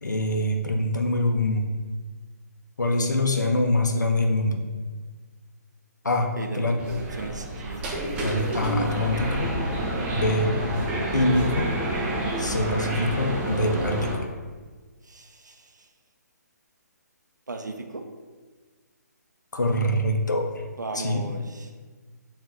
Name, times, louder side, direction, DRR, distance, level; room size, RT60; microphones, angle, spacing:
voice 1, 0.0-1.7 2.8-4.6 6.0-6.3 6.5-6.8 8.2-9.5 10.1-10.5 11.1-11.7 12.4-14.3 19.5-20.6 20.9-21.2, left 1 dB, 80° left, 3 dB, 0.5 m, -24 dB
voice 2, 6.4-7.8 10.3-10.7 15.0-15.9 17.5-18.0 20.8-21.7, right 3 dB, 80° right, 4 dB, 0.5 m, -36 dB
sound 1, 6.8-14.2, right 1 dB, 10° right, 0.4 m, -29 dB
3.6 x 2.4 x 4.2 m, 1.4 s
figure-of-eight pair, 140°, 10 cm